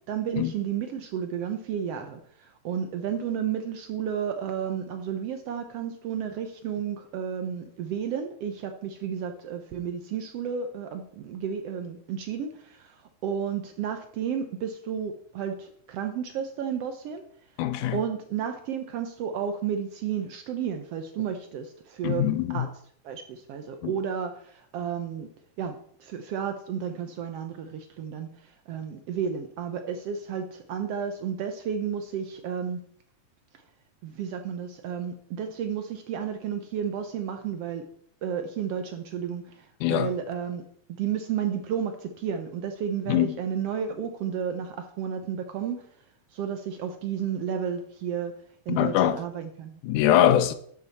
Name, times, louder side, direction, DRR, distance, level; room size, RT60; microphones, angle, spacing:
voice 1, 0.1-17.2 17.9-22.7 23.0-25.3 25.6-32.8 34.0-37.9 38.2-40.6 40.9-45.9 46.3-48.4 48.7-49.8, right 8 dB, 70° right, 1.5 m, -32 dB
voice 2, 17.6-18.0 22.0-22.7 23.8-23.9 39.8-40.1 43.1-43.4 48.7-49.2 49.8-50.5, left 12 dB, 85° left, 2.1 m, -23 dB
11.5 x 7.5 x 4.1 m
omnidirectional pair, 3.5 m